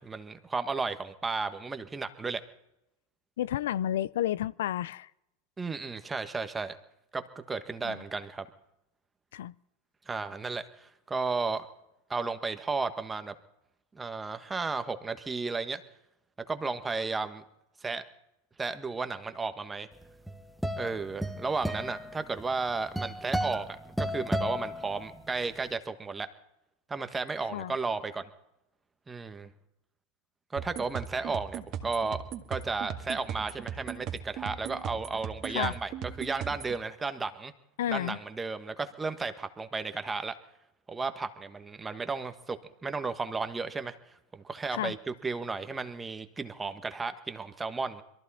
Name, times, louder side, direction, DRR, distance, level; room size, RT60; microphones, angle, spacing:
voice 1, 0.0-2.4 5.6-6.8 7.1-8.5 10.1-11.7 12.1-13.4 13.9-15.8 16.5-17.4 17.8-18.0 18.6-19.9 20.8-26.3 26.9-28.3 29.1-29.5 30.5-32.2 32.5-35.9 36.2-37.5 37.9-40.4 40.9-43.9 44.3-48.0, right 4 dB, 15° right, 1.5 m, -34 dB
voice 2, 3.4-5.1 7.8-8.0 9.3-9.5 27.5-27.7 35.5-35.7 37.8-38.2 44.7-44.9, left 12 dB, 75° left, 0.5 m, -31 dB
sound 1, 20.0-25.5, equal, ahead, 1.3 m, -34 dB
sound 2, 30.6-36.8, right 9 dB, 45° right, 1.9 m, -38 dB
22.5 x 14.5 x 4.3 m
hypercardioid pair, 100°, 0 cm